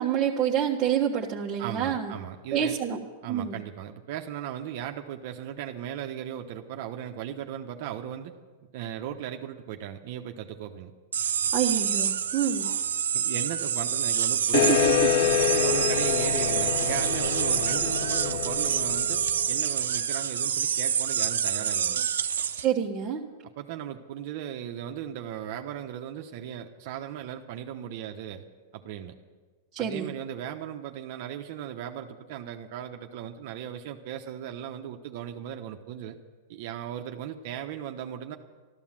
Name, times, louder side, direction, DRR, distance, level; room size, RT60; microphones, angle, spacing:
voice 1, 0.0-2.1 2.5-3.0 3.3-3.6 11.5-12.7 14.5-14.9 22.6-23.2 29.7-30.1, right 9 dB, 20° right, -5 dB, 1.4 m, -27 dB
voice 2, 1.6-2.8 3.2-8.3 8.7-10.9 11.2-11.3 13.1-22.0 23.6-28.4 28.7-29.1 29.8-36.2 36.5-38.4, right 10 dB, 55° right, 4 dB, 1.0 m, -37 dB
sound 1, 11.1-22.7, right 8 dB, 90° right, 0.7 m, -27 dB
sound 2, 14.5-19.6, left 12 dB, 60° left, 0.5 m, -27 dB
13.0 x 12.5 x 7.5 m, 1.4 s
hypercardioid pair, 135°, 0 cm